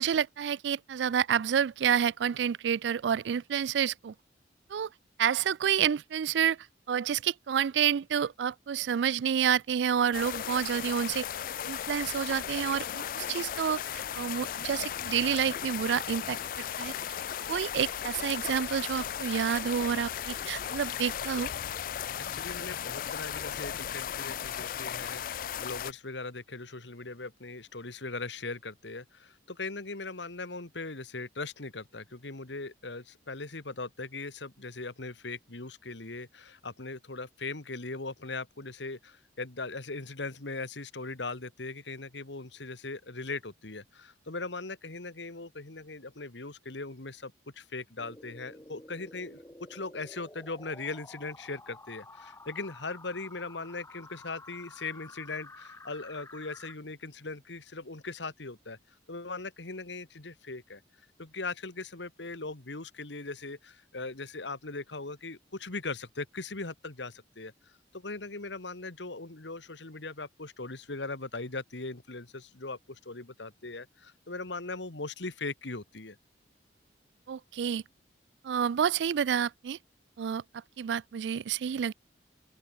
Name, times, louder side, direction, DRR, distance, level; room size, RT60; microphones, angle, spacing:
voice 1, 0.0-4.1 4.7-4.9 5.2-6.6 6.9-11.3 11.7-16.9 17.5-21.5 77.3-77.8 78.4-79.8 80.2-80.4 80.8-81.9, right 8 dB, 80° right, 0.3 m, -29 dB
sound 1, 10.1-25.9, left 9 dB, 50° left, 0.3 m, -36 dB
voice 2, 22.1-49.4 49.7-58.8 59.1-60.8 61.2-67.5 67.9-76.2, left 3 dB, 85° left, 2.0 m, -39 dB
sound 2, 48.0-56.8, left 2 dB, 15° left, 3.4 m, -51 dB
open air
head